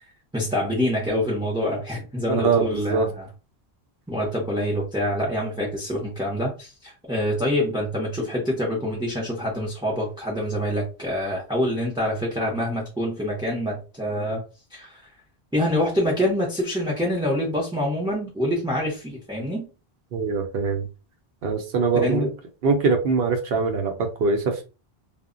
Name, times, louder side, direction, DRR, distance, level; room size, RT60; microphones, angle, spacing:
voice 1, 0.3-3.3 4.1-14.4 14.7-15.0 15.5-19.7 22.0-22.3, left 1 dB, 5° right, 0.5 m, -26 dB
voice 2, 2.3-3.1 20.1-20.9 21.4-22.3 22.6-24.6, right 4 dB, 70° right, 0.8 m, -23 dB
2.1 x 2.0 x 3.7 m
omnidirectional pair, 1.1 m